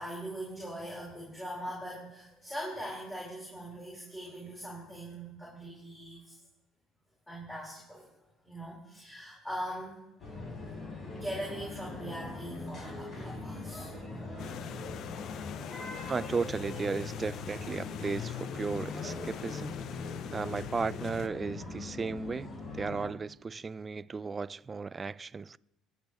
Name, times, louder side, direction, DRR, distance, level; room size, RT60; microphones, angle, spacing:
voice 1, 0.0-6.2 7.3-8.1 8.4-9.9 11.1-13.9, equal, 10° left, 4.5 m, -41 dB
sound 1, 10.2-23.1, left 2 dB, 40° left, 4.1 m, -42 dB
sound 2, 14.4-21.3, left 10 dB, 60° left, 0.6 m, -42 dB
voice 2, 16.1-19.7 20.3-25.6, right 4 dB, 30° right, 0.3 m, -35 dB
22.5 x 8.3 x 3.1 m
supercardioid pair, 80°, 0 cm